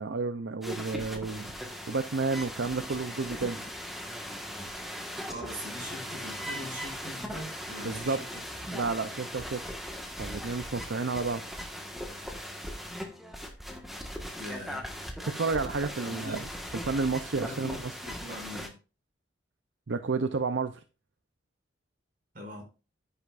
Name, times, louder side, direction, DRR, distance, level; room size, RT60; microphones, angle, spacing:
voice 1, 0.0-1.5 1.9-3.6 7.8-8.2 8.7-9.6 10.2-11.4 15.2-16.5 16.8-17.9 19.9-20.8, right 4 dB, 75° right, 10 dB, 0.6 m, -31 dB
sound 1, 0.6-18.7, equal, ahead, 1.5 m, -39 dB
voice 2, 5.3-8.4 14.4-14.9 16.0-16.5 17.4-18.7 22.3-22.6, equal, 50° right, 0 dB, 6.1 m, -42 dB
10.0 x 9.9 x 2.5 m, 0.32 s
head